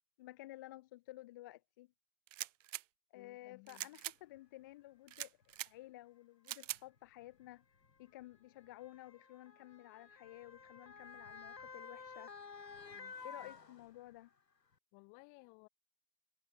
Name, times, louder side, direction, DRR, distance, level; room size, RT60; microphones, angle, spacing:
voice 1, 0.2-1.9 3.1-5.4 5.6-7.6 8.0-12.3 13.2-14.3, left 17 dB, 15° left, 0.4 m, -53 dB
sound 1, 2.3-2.8 3.7-4.2 5.1-5.7 6.5-6.8, right 14 dB, 55° right, 0.6 m, -43 dB
voice 2, 3.1-3.9 12.9-13.6 14.9-15.7, left 32 dB, 35° left, 3.7 m, -61 dB
Motor vehicle (road) / Siren, 4.4-4.5 5.4-5.6 6.7-14.3 14.7-14.8, left 5 dB, 85° left, 2.1 m, -53 dB
figure-of-eight pair, 110°, 48 cm